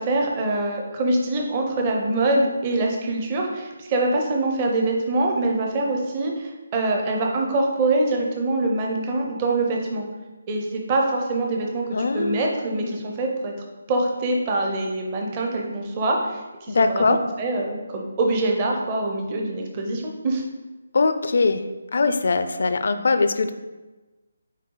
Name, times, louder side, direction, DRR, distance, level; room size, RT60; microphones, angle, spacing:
voice 1, 0.0-10.1 10.5-11.9 12.1-13.5 13.9-20.4, right 2 dB, 20° right, 1 dB, 0.7 m, -24 dB
voice 2, 11.9-13.0 16.7-17.2 20.9-21.6 21.9-23.5, left 3 dB, 55° left, 9 dB, 0.5 m, -22 dB
9.0 x 3.1 x 3.9 m, 1.2 s
hypercardioid pair, 175°, 0 cm